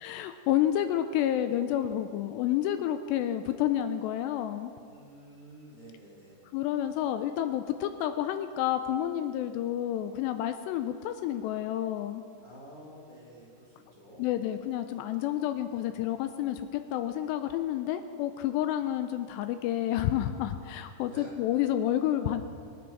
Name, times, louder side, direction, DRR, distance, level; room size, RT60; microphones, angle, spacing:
voice 1, 0.0-4.7 6.5-12.2 14.2-22.4, left 11 dB, 85° left, 9 dB, 2.7 m, -29 dB
voice 2, 4.9-6.5 12.4-14.2 21.1-21.3, right 1 dB, 20° right, -7 dB, 3.8 m, -50 dB
26.0 x 10.5 x 4.6 m, 2.5 s
omnidirectional pair, 5.1 m